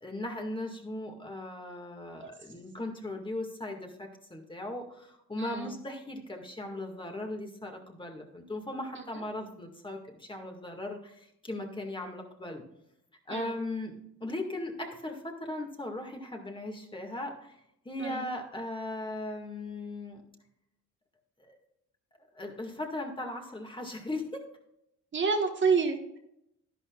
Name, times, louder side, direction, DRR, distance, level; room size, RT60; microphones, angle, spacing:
voice 1, 0.0-12.6 13.3-17.6 17.9-20.2 21.4-21.6 22.4-24.4, left 1 dB, 15° left, 2 dB, 2.0 m, -38 dB
voice 2, 5.4-5.8 8.9-9.0 13.3-13.6 18.0-18.2 25.1-26.2, right 5 dB, 40° right, 3 dB, 1.5 m, -29 dB
11.5 x 11.0 x 2.4 m, 0.78 s
cardioid pair, 90°, 30 cm